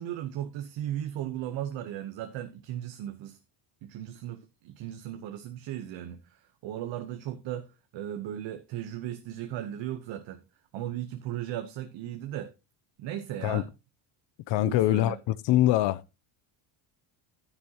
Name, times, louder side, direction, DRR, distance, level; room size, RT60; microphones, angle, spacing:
voice 1, 0.0-3.4 3.8-10.4 10.7-12.5 13.0-13.7 14.6-15.2, right 11 dB, 65° right, 1.0 m, -36 dB
voice 2, 14.5-16.0, left 14 dB, 60° left, 0.6 m, -24 dB
10.5 x 9.8 x 2.9 m
cardioid pair, 140°, 49 cm